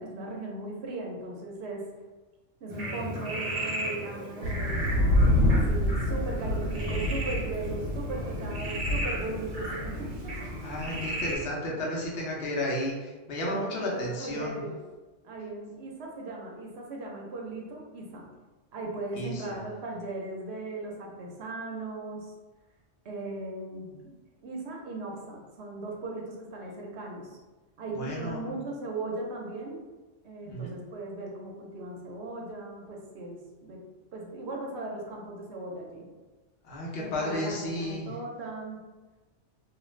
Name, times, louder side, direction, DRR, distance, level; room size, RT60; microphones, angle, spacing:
voice 1, 0.0-1.9 2.6-10.8 13.4-14.8 15.2-18.2 18.7-22.3 23.0-24.1 24.4-27.4 27.8-29.9 30.2-33.8 34.1-36.1 36.9-38.8, right 2 dB, 65° right, -1 dB, 0.8 m, -38 dB
Frog, 2.7-11.4, right 1 dB, 40° right, 0.6 m, -36 dB
sound 1, 4.4-11.5, left 1 dB, 90° right, 0.9 m, -28 dB
voice 2, 10.6-14.6 19.1-19.6 28.0-28.5 30.4-30.7 36.6-38.1, left 1 dB, 60° left, -3 dB, 0.9 m, -33 dB
2.4 x 2.3 x 3.1 m, 1.2 s
omnidirectional pair, 1.3 m